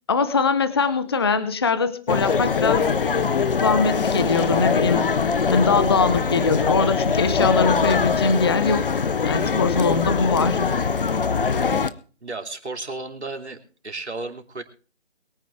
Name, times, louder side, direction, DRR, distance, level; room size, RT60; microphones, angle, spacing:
voice 1, 0.1-2.9 3.6-5.0 5.5-10.6, left 4 dB, 20° left, 13 dB, 0.6 m, -22 dB
sound 1, 2.1-11.9, left 5 dB, 50° left, 0.9 m, -22 dB
voice 2, 12.2-14.6, right 3 dB, 75° right, 4 dB, 2.8 m, -33 dB
22.5 x 9.3 x 3.4 m, 0.38 s
figure-of-eight pair, 150°, 34 cm